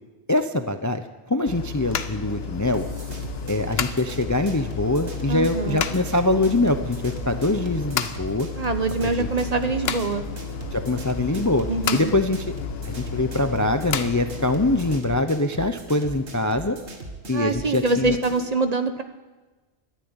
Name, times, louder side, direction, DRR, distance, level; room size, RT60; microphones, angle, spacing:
voice 1, 0.3-2.9 3.5-8.5 9.2-9.3 10.7-11.7 11.9-12.5 12.8-16.8 17.3-18.2, left 2 dB, 20° left, 8 dB, 0.6 m, -23 dB
sound 1, 1.5-15.0, left 6 dB, 65° left, 1.0 m, -32 dB
sound 2, 2.7-18.5, right 2 dB, 85° right, 2.1 m, -39 dB
voice 2, 5.3-5.8 8.6-10.2 11.7-12.1 17.3-19.0, right 3 dB, 40° right, 8 dB, 1.0 m, -24 dB
13.5 x 11.5 x 8.9 m, 1.2 s
omnidirectional pair, 1.1 m